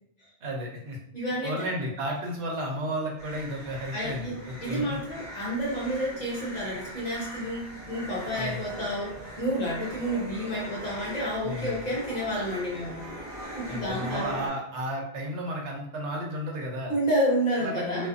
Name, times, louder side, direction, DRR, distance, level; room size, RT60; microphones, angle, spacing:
voice 1, 0.4-1.0 1.4-4.8 8.3-8.6 11.4-11.7 13.7-16.9 17.6-18.1, equal, 85° right, -1 dB, 1.0 m, -33 dB
voice 2, 1.1-1.7 3.9-13.0 13.6-14.4 16.9-18.1, equal, 45° left, -4 dB, 0.6 m, -30 dB
sound 1, 3.2-14.5, equal, 45° right, 1.0 m, -41 dB
2.4 x 2.4 x 2.5 m, 0.69 s
omnidirectional pair, 1.2 m